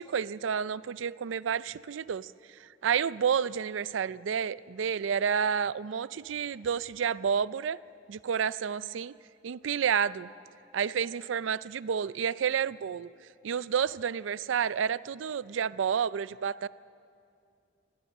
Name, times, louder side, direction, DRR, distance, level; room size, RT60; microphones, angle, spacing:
voice 1, 0.0-2.3 2.8-7.8 8.1-9.1 9.4-10.3 10.7-13.1 13.4-16.7, right 7 dB, 90° right, 18 dB, 0.4 m, -30 dB
26.5 x 17.0 x 6.6 m, 2.4 s
head